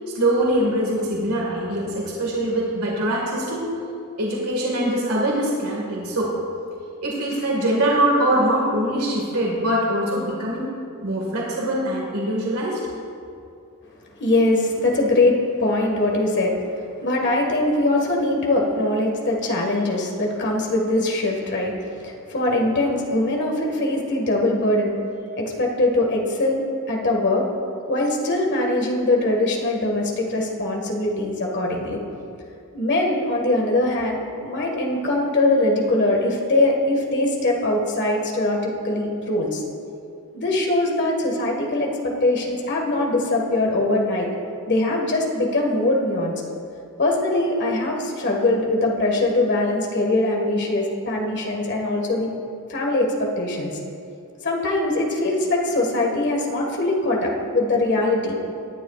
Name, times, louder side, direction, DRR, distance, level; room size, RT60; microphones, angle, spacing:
voice 1, 0.2-3.7 4.2-6.4 7.0-10.6 11.0-12.8, right 1 dB, 90° right, -3 dB, 1.9 m, -23 dB
voice 2, 14.2-16.6 17.0-21.7 22.0-24.9 25.4-27.5 27.9-32.0 32.7-39.6 40.3-44.3 44.7-46.3 47.0-52.3 52.7-53.7 54.4-58.3, left 2 dB, 55° left, 0 dB, 1.8 m, -22 dB
18.0 x 10.5 x 2.5 m, 2.5 s
head